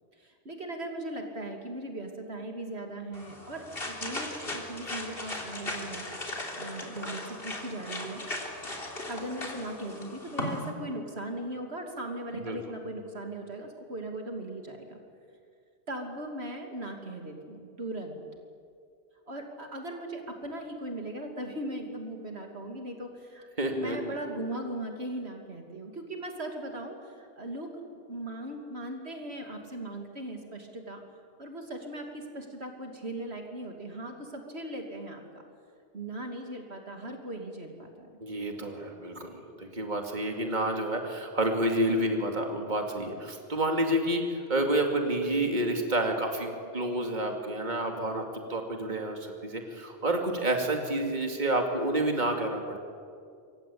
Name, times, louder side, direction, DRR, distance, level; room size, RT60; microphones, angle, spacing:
voice 1, 0.2-6.1 6.6-8.2 9.1-15.0 15.9-18.2 19.3-23.5 23.7-27.8 28.1-31.0 31.4-35.2 35.9-38.1, right 1 dB, 70° right, 3 dB, 3.0 m, -38 dB
sound 1, 3.1-10.7, left 1 dB, 60° left, 3.7 m, -37 dB
voice 2, 23.6-24.2 38.2-48.2 48.5-52.8, right 1 dB, 40° right, 3 dB, 2.8 m, -29 dB
27.0 x 24.5 x 8.7 m, 2.3 s
omnidirectional pair, 1.1 m